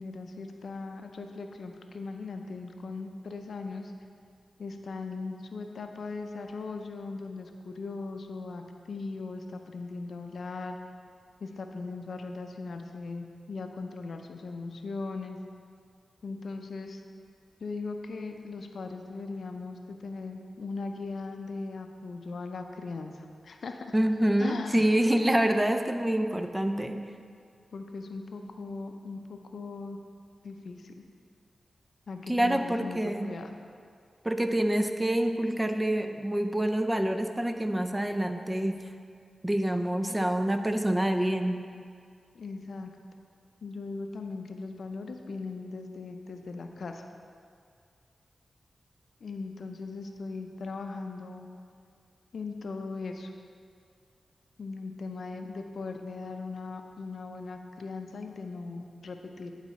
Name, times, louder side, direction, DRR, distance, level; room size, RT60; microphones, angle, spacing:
voice 1, 0.0-3.9 4.6-10.8 11.4-15.4 16.2-17.0 17.6-23.9 24.4-24.9 27.7-30.0 30.4-31.0 32.1-33.6 42.3-42.9 43.6-47.1 49.2-51.5 52.3-53.3 54.6-59.5, left 3 dB, 75° left, 5 dB, 0.5 m, -39 dB
voice 2, 23.9-27.0 32.3-33.3 34.2-38.8 39.4-41.6, right 1 dB, 15° right, 6 dB, 0.5 m, -26 dB
10.5 x 4.0 x 4.1 m, 2.2 s
cardioid pair, 50°, 0 cm